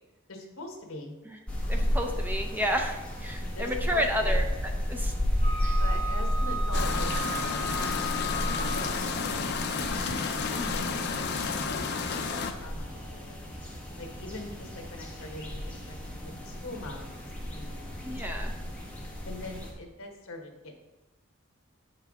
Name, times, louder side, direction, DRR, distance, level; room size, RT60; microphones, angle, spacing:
voice 1, 0.3-1.1 3.5-4.4 5.7-7.1 8.6-9.7 10.6-13.5 13.9-17.2 17.5-18.1 19.2-20.7, left 2 dB, 75° left, 3 dB, 1.2 m, -43 dB
sound 1, 1.5-19.7, equal, 5° left, 1.3 m, -32 dB
voice 2, 1.7-5.1 5.6-5.8 10.5-11.0 18.0-18.5, equal, 10° right, 3 dB, 0.6 m, -31 dB
Wind instrument woodwind instrument, 5.4-9.0, right 1 dB, 30° left, 1.3 m, -36 dB
sound 2, 6.7-12.5, left 5 dB, 50° left, 0.6 m, -31 dB
8.5 x 5.7 x 3.6 m, 1.1 s
head